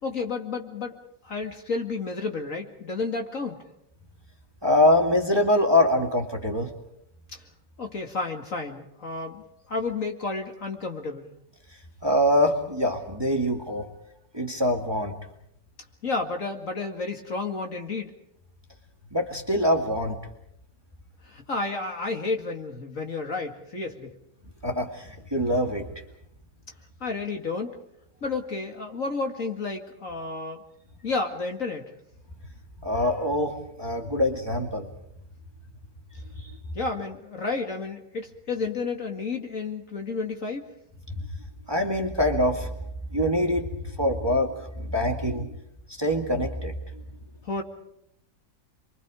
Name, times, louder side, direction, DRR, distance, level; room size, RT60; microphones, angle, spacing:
voice 1, 0.0-1.0 1.2-3.6 7.3-7.4 7.8-9.4 9.7-11.3 16.0-18.1 21.2-24.1 27.0-27.7 28.2-30.6 31.0-31.9 36.7-40.6 47.4-47.6, left 3 dB, 50° left, 3 dB, 2.4 m, -31 dB
voice 2, 4.6-6.7 12.0-13.9 14.3-15.2 19.1-20.2 24.6-25.9 32.8-34.9 36.4-36.5 41.7-42.7 43.1-43.7 44.0-45.5 46.0-46.7, left 1 dB, 15° right, 2 dB, 2.2 m, -24 dB
29.5 x 24.0 x 4.9 m, 0.76 s
omnidirectional pair, 1.9 m